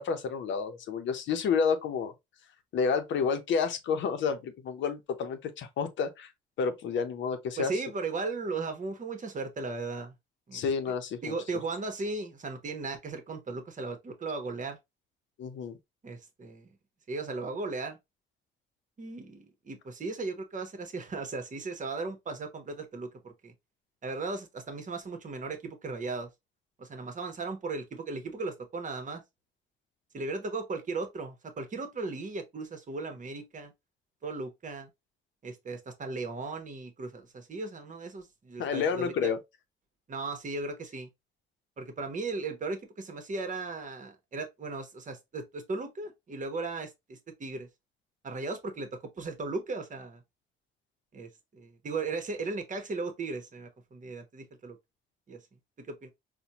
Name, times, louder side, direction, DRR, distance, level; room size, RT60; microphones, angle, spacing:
voice 1, 0.0-2.1 2.7-6.3 6.6-7.8 10.5-11.3 15.4-15.8 38.6-39.4, left 6 dB, 70° left, 0.7 m, -30 dB
voice 2, 7.6-10.1 10.5-10.6 11.2-14.8 16.0-16.7 17.1-18.0 19.0-23.5 24.0-26.3 26.8-29.2 30.1-33.7 34.2-34.9 35.4-39.3 40.1-41.1 41.8-47.7 48.2-48.9 49.2-50.2 51.1-54.8 55.3-55.4 55.8-56.1, right 3 dB, 40° right, 1.0 m, -36 dB
4.1 x 2.2 x 2.8 m
cardioid pair, 90°, 20 cm